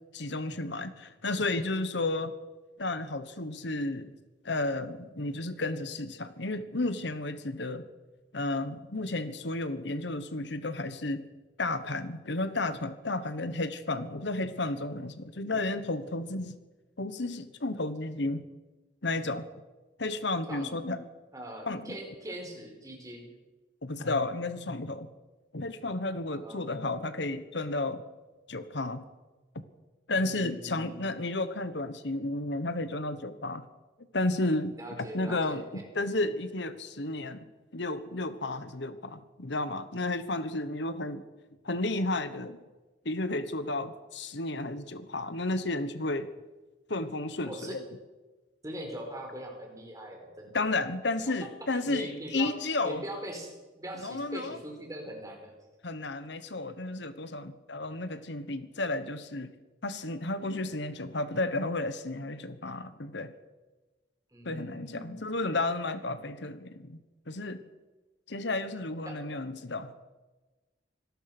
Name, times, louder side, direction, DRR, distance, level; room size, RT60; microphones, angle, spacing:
voice 1, 0.1-2.3 2.8-4.1 4.4-7.9 8.3-11.2 11.6-16.5 17.0-18.4 19.0-19.4 20.0-21.0 21.7-21.9 23.8-25.1 25.5-28.0 28.5-29.0 30.1-33.7 34.1-37.5 37.7-41.2 41.6-42.6 43.0-46.3 46.9-47.8 50.5-53.0 54.0-54.6 55.8-59.5 59.8-63.3 64.4-67.0 67.3-67.6 68.3-69.9, left 2 dB, 65° left, 12 dB, 1.2 m, -32 dB
voice 2, 21.3-23.3 26.3-26.8 30.1-31.0 34.8-35.9 47.4-47.7 48.6-50.6 51.7-52.5 52.8-53.5 53.7-55.5 64.3-65.2 69.0-69.2, right 1 dB, 15° right, 1 dB, 4.9 m, -41 dB
25.0 x 19.0 x 6.1 m, 1.2 s
head